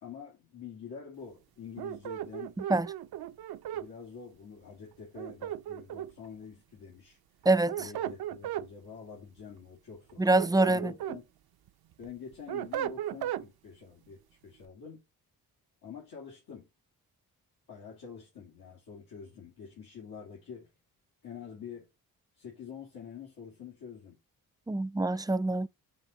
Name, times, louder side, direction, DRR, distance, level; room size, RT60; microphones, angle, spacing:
voice 1, 0.0-2.6 3.7-7.2 7.8-10.2 10.6-11.2 12.0-15.0 15.8-16.7 17.7-20.7 21.2-21.9 22.4-24.2, left 7 dB, 80° left, 2.7 m, -46 dB
sound 1, 1.8-3.9 5.2-6.3 7.4-8.7 10.1-11.2 11.7-13.5, right 11 dB, 70° right, 0.6 m, -36 dB
voice 2, 7.5-7.9 10.2-10.9 24.7-25.7, right 2 dB, 10° right, 0.3 m, -25 dB
5.8 x 5.3 x 3.9 m
cardioid pair, 85°, 38 cm